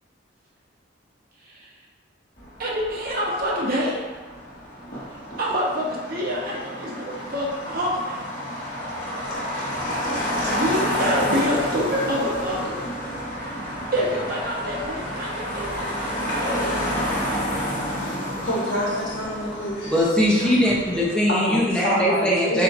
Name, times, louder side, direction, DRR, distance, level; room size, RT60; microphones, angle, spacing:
Motor vehicle (road), 2.4-21.1, equal, 45° left, 1.4 m, -30 dB
voice 1, 2.6-4.0 5.4-8.3 10.5-12.8 13.9-16.8 20.3-20.5, equal, 50° right, -3 dB, 0.9 m, -27 dB
voice 2, 18.4-20.0 21.3-22.6, equal, 70° left, -6 dB, 1.3 m, -27 dB
voice 3, 19.9-22.6, equal, 5° left, -5 dB, 0.7 m, -20 dB
4.2 x 2.6 x 4.2 m, 1.5 s
head